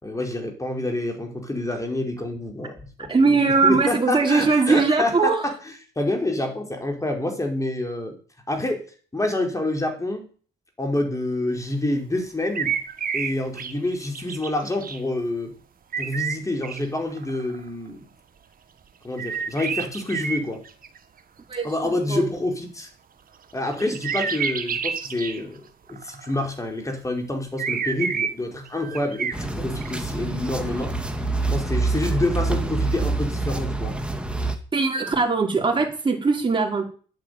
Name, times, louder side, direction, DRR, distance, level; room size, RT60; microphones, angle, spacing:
voice 1, 0.0-3.4 3.6-5.5 6.0-8.2 8.5-8.9 9.1-10.3 10.8-12.7 13.1-15.5 16.0-18.0 19.0-20.6 21.6-22.9 23.5-25.6 25.9-30.9 31.5-34.0, left 2 dB, 15° left, 3 dB, 5.2 m, -27 dB
voice 2, 3.1-5.5 21.5-22.3 34.7-36.9, right 4 dB, 25° right, 0 dB, 4.6 m, -21 dB
sound 1, 12.6-13.7 14.0-15.0 15.9-16.8 17.1-17.9 19.2-21.0 23.7-25.4 25.9-26.4 27.6-28.3 28.7-29.4 29.8-29.9, right 6 dB, 45° right, 1.7 m, -29 dB
sound 2, 29.3-34.6, right 3 dB, 5° right, 2.2 m, -26 dB
11.0 x 9.5 x 9.6 m, 0.41 s
cardioid pair, 90°, 20 cm